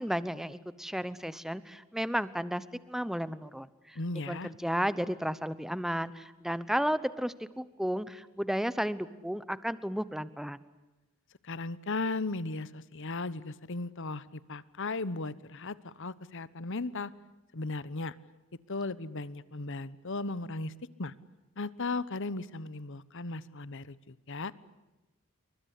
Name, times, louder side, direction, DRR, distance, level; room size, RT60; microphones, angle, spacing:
voice 1, 0.0-10.6, equal, ahead, 15 dB, 0.9 m, -33 dB
voice 2, 3.9-4.5 11.4-17.1 17.5-18.1 18.7-20.7 21.0-21.1 21.6-24.5, left 3 dB, 55° left, 17 dB, 1.0 m, -36 dB
28.5 x 23.5 x 8.4 m, 1.0 s
head